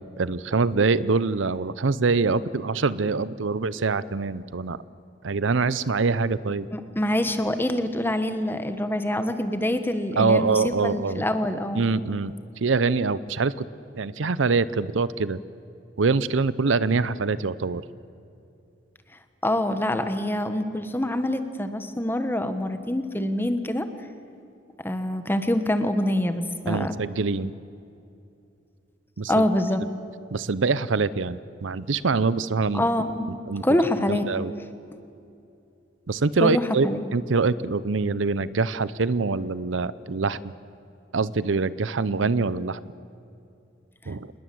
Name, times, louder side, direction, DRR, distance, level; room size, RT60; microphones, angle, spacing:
voice 1, 0.2-4.8 5.2-6.7 10.2-11.2 11.7-12.3 12.6-13.7 13.9-15.4 16.0-17.8 26.7-27.5 29.2-29.4 30.3-32.9 33.5-33.6 34.1-34.5 36.1-40.5 41.1-42.8 44.1-44.3, right 4 dB, 80° right, 17 dB, 0.7 m, -24 dB
voice 2, 6.7-11.8 19.4-23.9 24.8-26.9 29.3-29.8 32.7-34.3 36.4-37.0, left 1 dB, 10° left, 9 dB, 1.3 m, -25 dB
27.0 x 20.5 x 7.8 m, 2.6 s
head